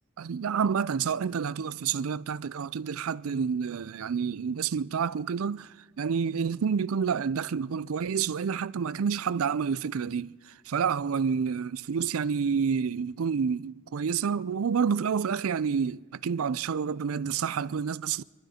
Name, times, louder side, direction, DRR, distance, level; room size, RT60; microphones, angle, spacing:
voice 1, 0.2-10.3 10.7-18.2, right 6 dB, 80° right, 0.4 m, -29 dB
28.0 x 11.5 x 4.3 m
head